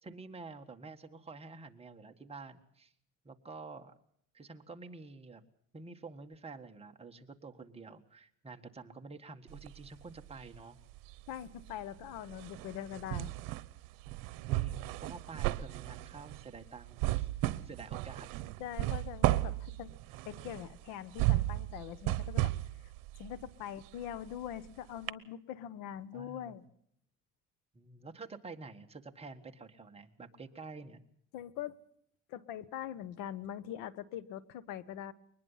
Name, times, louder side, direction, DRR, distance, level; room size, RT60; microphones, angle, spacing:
voice 1, 0.0-2.9 3.2-3.9 4.3-5.4 5.7-10.8 14.5-18.3 26.1-26.6 27.7-31.0, right 3 dB, 20° right, 4 dB, 1.7 m, -49 dB
sound 1, 9.5-10.6 10.9-24.7 25.1-25.2, right 17 dB, 85° right, 1.0 m, -35 dB
voice 2, 11.3-13.3 18.6-19.9 20.2-22.5 23.2-26.6 31.3-31.8 32.3-35.1, left 10 dB, 90° left, 17 dB, 1.2 m, -43 dB
23.0 x 20.0 x 5.7 m, 0.69 s
cardioid pair, 130°, 33 cm